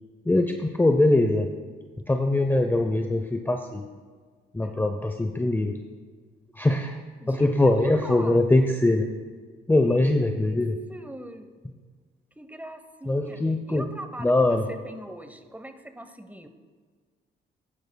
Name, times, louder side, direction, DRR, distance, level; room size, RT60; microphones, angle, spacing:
voice 1, 0.3-1.5 2.1-3.8 4.5-5.8 6.5-7.0 7.3-9.1 9.7-10.8 13.1-13.9 14.2-14.7, left 2 dB, 10° left, 5 dB, 0.6 m, -22 dB
voice 2, 7.7-8.4 9.8-10.2 10.4-10.6 10.9-11.5 12.4-13.4 13.7-16.5, right 1 dB, 10° right, 7 dB, 1.0 m, -41 dB
14.5 x 10.5 x 2.3 m, 1.5 s
supercardioid pair, 70°, 21 cm